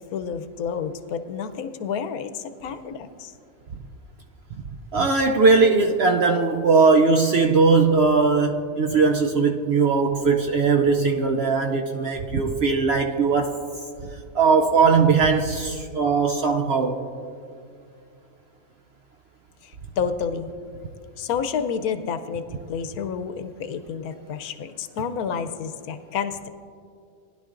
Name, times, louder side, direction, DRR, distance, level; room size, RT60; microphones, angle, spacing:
voice 1, 0.0-3.3 20.0-20.5 21.2-22.4 22.7-26.5, left 7 dB, 85° left, 9 dB, 1.1 m, -29 dB
voice 2, 4.9-13.6 14.3-17.0, right 4 dB, 65° right, 3 dB, 0.7 m, -19 dB
19.0 x 11.0 x 2.5 m, 2.4 s
omnidirectional pair, 1.5 m